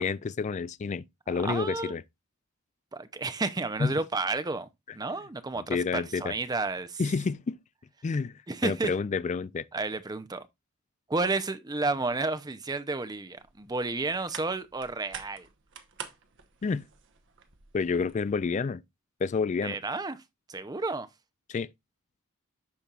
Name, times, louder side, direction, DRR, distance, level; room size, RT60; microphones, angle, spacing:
voice 1, 0.0-2.0 3.8-4.0 5.6-6.3 7.0-7.6 8.0-9.6 16.6-16.9 17.7-18.8 19.2-19.8 21.5-21.7, left 5 dB, 30° left, 0.3 m, -29 dB
voice 2, 1.3-1.9 2.9-4.7 4.9-7.0 8.5-8.9 9.7-10.5 11.1-15.5 19.6-20.2 20.5-21.1, right 3 dB, 20° right, 0.6 m, -31 dB
sound 1, 13.4-18.6, right 7 dB, 60° right, 1.0 m, -48 dB
12.0 x 4.4 x 2.4 m
head